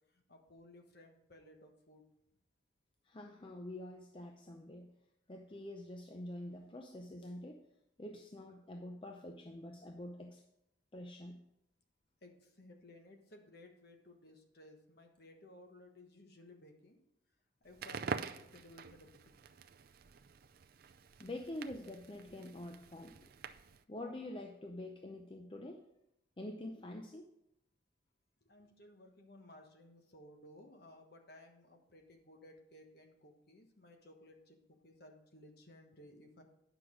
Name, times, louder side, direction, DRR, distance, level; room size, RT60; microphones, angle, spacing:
voice 1, 0.1-2.0 12.2-17.0 17.6-19.2 28.4-36.4, left 1 dB, 50° left, 3 dB, 1.4 m, -58 dB
voice 2, 3.1-4.9 5.3-7.7 8.0-10.4 10.9-11.4 21.2-23.3 23.9-25.8 26.4-27.3, left 1 dB, 25° left, 4 dB, 0.5 m, -46 dB
Crackle, 17.7-23.8, right 5 dB, 50° right, 0.4 m, -46 dB
9.7 x 6.2 x 4.9 m, 0.81 s
head